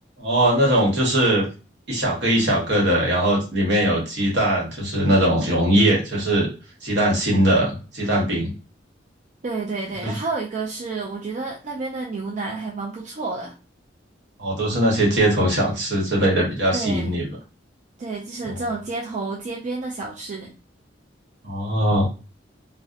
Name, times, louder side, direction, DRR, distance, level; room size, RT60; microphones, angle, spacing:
voice 1, 0.2-1.5 1.9-6.5 6.8-8.5 10.0-10.2 14.4-17.3 18.5-18.6 21.4-22.1, right 1 dB, 65° right, -3 dB, 1.1 m, -20 dB
voice 2, 9.4-13.5 16.7-17.1 18.0-20.5, right 3 dB, 45° right, -2 dB, 0.4 m, -30 dB
2.7 x 2.1 x 2.4 m, 0.34 s
head